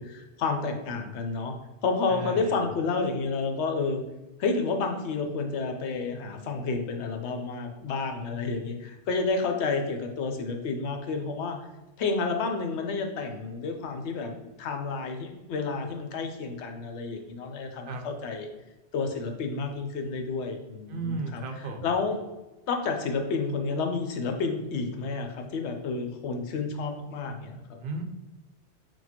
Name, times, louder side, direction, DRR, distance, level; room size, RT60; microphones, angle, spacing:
voice 1, 0.0-1.5 1.8-4.0 4.4-11.6 12.0-14.3 14.6-18.5 18.9-22.2 22.7-27.8, left 4 dB, 75° left, 4 dB, 0.9 m, -30 dB
voice 2, 2.1-2.6 17.9-18.1 20.9-21.9 27.8-28.0, right 3 dB, 55° right, 4 dB, 0.7 m, -34 dB
6.0 x 2.2 x 2.9 m, 1.0 s
omnidirectional pair, 1.2 m